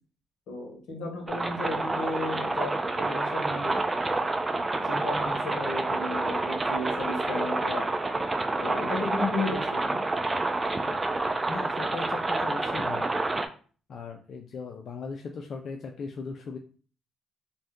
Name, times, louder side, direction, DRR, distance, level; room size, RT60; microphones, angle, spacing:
voice 1, 0.5-3.8 4.4-4.5 4.9-7.9 8.6-10.0, left 2 dB, 85° left, 0 dB, 1.0 m, -34 dB
sound 1, 1.3-13.5, right 2 dB, 20° right, 0.3 m, -28 dB
voice 2, 11.5-13.1 13.9-16.6, left 4 dB, 60° left, 3 dB, 0.3 m, -38 dB
2.6 x 2.1 x 3.5 m, 0.40 s
cardioid pair, 90°, 0 cm